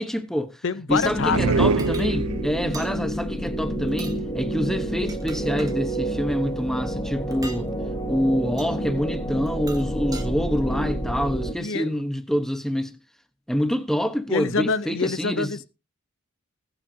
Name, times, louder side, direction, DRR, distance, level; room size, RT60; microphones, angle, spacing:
voice 1, 0.0-0.6 0.9-7.7 8.1-13.0 13.5-15.6, equal, ahead, 1.2 m, -26 dB
voice 2, 0.6-1.7 2.6-2.7 11.6-11.9 14.3-15.6, left 4 dB, 65° left, 0.8 m, -26 dB
sound 1, 0.9-11.5, right 1 dB, 20° left, 1.4 m, -29 dB
sound 2, 1.2-2.8, right 4 dB, 90° right, 0.6 m, -23 dB
sound 3, 1.8-2.1 2.7-2.9 3.9-4.2 4.9-5.8 7.3-7.6 8.6-8.7 9.5-10.3, right 3 dB, 15° right, 1.5 m, -40 dB
20.5 x 9.0 x 2.8 m
head